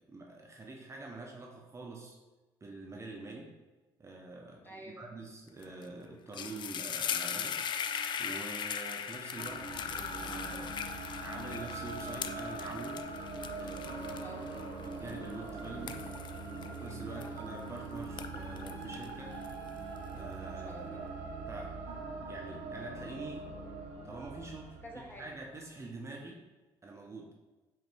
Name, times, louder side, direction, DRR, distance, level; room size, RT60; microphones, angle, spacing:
voice 1, 0.1-2.2 2.6-3.5 4.0-7.6 8.2-10.8 11.2-13.0 13.6-14.0 14.8-16.1 16.6-19.4 20.1-21.0 21.5-21.8 22.3-23.5 24.0-24.8 25.2-26.4 26.8-27.3, right 3 dB, 30° right, 0 dB, 0.8 m, -45 dB
voice 2, 4.6-5.1 14.1-14.7 17.1-17.3 20.5-21.1 24.8-25.3, equal, 20° left, -1 dB, 1.2 m, -49 dB
sound 1, 5.6-5.8 6.1-17.7 18.0-20.0, left 7 dB, 50° left, 0.3 m, -39 dB
sound 2, 9.4-25.6, right 3 dB, 80° right, 0.8 m, -42 dB
5.0 x 3.2 x 3.3 m, 1.2 s
supercardioid pair, 60°, 10 cm